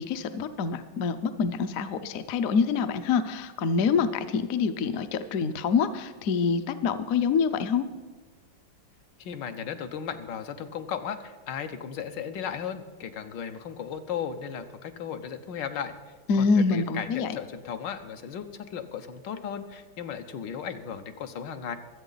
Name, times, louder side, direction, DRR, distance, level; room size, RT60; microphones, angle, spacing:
voice 1, 0.0-7.8 16.3-17.3, left 5 dB, 60° left, 10 dB, 0.9 m, -26 dB
voice 2, 9.2-15.9 16.4-21.8, left 7 dB, 80° left, 7 dB, 1.5 m, -36 dB
24.0 x 8.2 x 4.0 m, 1.3 s
omnidirectional pair, 2.0 m